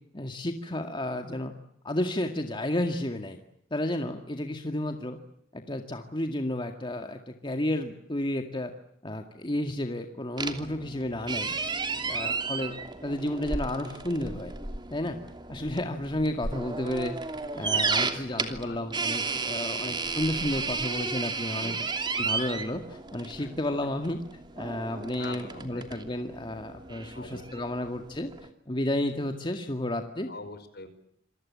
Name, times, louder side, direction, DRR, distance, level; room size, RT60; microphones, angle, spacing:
voice 1, 0.1-1.5 1.8-3.4 3.7-5.2 5.5-8.7 9.0-11.5 12.0-12.7 13.0-14.5 14.9-15.2 15.5-17.2 17.5-21.8 22.2-24.2 24.6-28.3 28.7-30.3, left 1 dB, 25° left, 5 dB, 2.1 m, -32 dB
sound 1, 10.4-28.5, right 4 dB, 25° right, 2.9 m, -33 dB
voice 2, 17.7-18.9 19.7-20.2 21.6-21.9 23.4-23.5 24.9-25.9 27.1-27.8 29.1-29.2 30.3-30.9, left 2 dB, 55° left, 10 dB, 5.4 m, -46 dB
28.0 x 23.0 x 8.5 m, 0.73 s
head